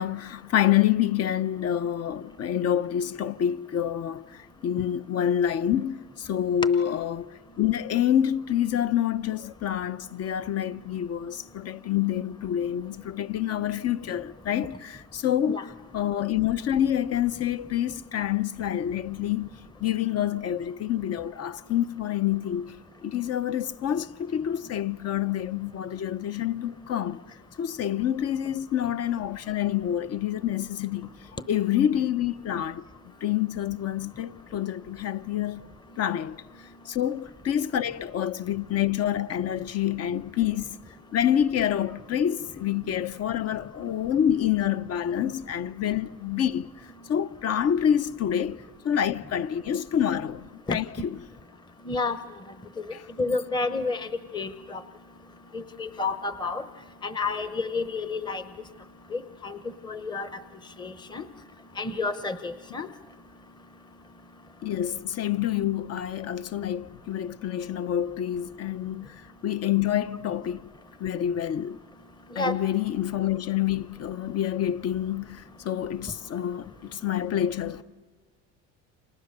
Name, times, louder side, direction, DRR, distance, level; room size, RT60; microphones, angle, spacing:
voice 1, 0.0-7.3 7.6-22.8 23.0-27.2 27.6-31.2 31.5-32.8 33.2-35.6 36.0-40.8 41.1-46.7 47.1-51.2 52.9-53.0 64.6-70.7 71.0-71.8 72.4-77.8, left 10 dB, 45° left, 0.7 m, -27 dB
voice 2, 51.9-52.2 53.2-54.8 55.5-56.6 57.0-58.4 59.1-59.6 59.8-60.4 60.8-61.2 61.8-62.9 72.3-72.5, left 3 dB, 15° left, 0.8 m, -30 dB
30.0 x 26.5 x 6.7 m
cardioid pair, 115°, 35 cm